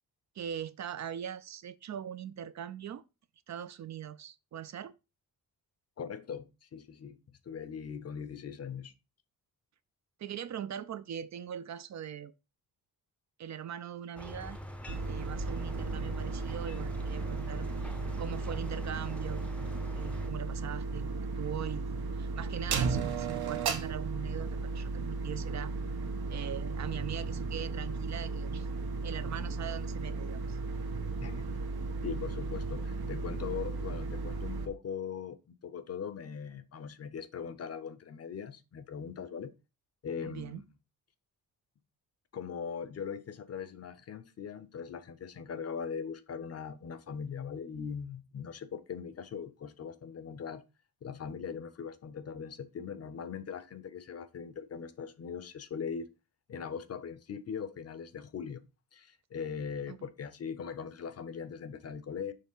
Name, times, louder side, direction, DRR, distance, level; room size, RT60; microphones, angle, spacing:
voice 1, 0.4-3.0 3.5-4.9 10.2-12.3 13.4-14.6 15.1-19.4 19.9-21.9 22.2-25.7 26.3-28.7 29.0-30.6 40.2-40.6 59.9-60.0, right 9 dB, 50° right, 0.4 m, -41 dB
voice 2, 6.0-7.2 7.4-8.9 31.2-31.4 32.0-39.5 40.0-40.7 42.3-50.6 51.0-56.1 56.5-58.6 58.9-62.3, left 6 dB, 40° left, 0.7 m, -40 dB
sound 1, 14.2-20.3, equal, 5° left, 0.6 m, -45 dB
sound 2, 14.9-34.7, right 4 dB, 85° right, 1.3 m, -35 dB
6.7 x 3.4 x 5.5 m
wide cardioid pair, 170°, 37 cm